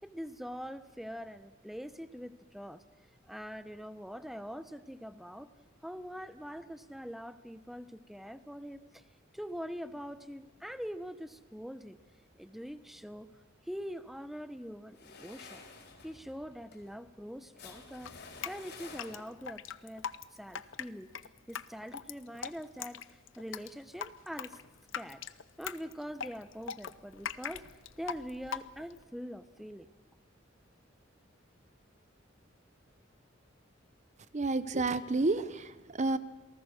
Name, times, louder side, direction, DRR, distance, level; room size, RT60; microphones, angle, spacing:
voice 1, 0.0-2.8 3.3-5.5 5.8-9.0 9.3-12.0 12.4-13.3 13.6-15.6 16.0-18.2 18.4-21.1 21.5-24.6 24.9-25.2 25.6-27.7 28.0-29.9, equal, ahead, 12 dB, 0.7 m, -43 dB
sound 1, 14.9-19.6, left 4 dB, 60° left, 4.3 m, -51 dB
Drip, 18.1-29.0, left 7 dB, 75° left, 0.8 m, -42 dB
voice 2, 34.3-36.2, right 3 dB, 35° right, 14 dB, 0.7 m, -30 dB
28.0 x 19.0 x 6.4 m, 1.2 s
head